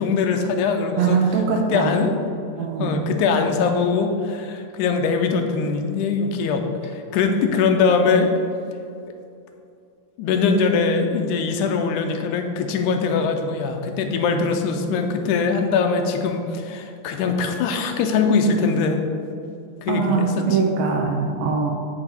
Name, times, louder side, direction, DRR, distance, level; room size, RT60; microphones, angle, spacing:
voice 1, 0.0-2.2 2.8-8.3 10.2-19.0 19.8-20.6, left 5 dB, 80° left, 5 dB, 2.0 m, -22 dB
voice 2, 1.0-1.9 2.6-3.0 19.9-21.7, right 5 dB, 85° right, 0 dB, 1.5 m, -22 dB
8.8 x 4.0 x 4.4 m, 2.4 s
omnidirectional pair, 3.7 m